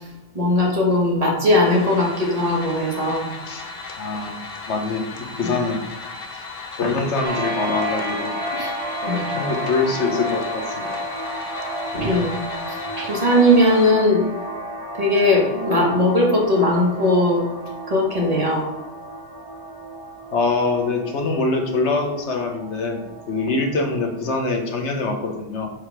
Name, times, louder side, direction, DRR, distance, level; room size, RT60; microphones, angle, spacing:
voice 1, 0.3-3.3 5.4-5.5 8.5-8.7 9.1-9.3 11.9-12.4 13.0-14.3 15.0-17.4 17.9-18.6, left 1 dB, 35° right, -3 dB, 1.9 m, -19 dB
sound 1, 1.6-13.9, left 4 dB, 60° left, 1.0 m, -36 dB
voice 2, 4.0-5.1 5.4-5.8 6.8-8.4 9.0-10.9 20.3-25.7, left 3 dB, 90° left, 2 dB, 1.4 m, -24 dB
sound 2, 7.2-24.5, right 1 dB, 55° right, 1.7 m, -32 dB
4.9 x 4.7 x 6.0 m, 1.0 s
omnidirectional pair, 1.1 m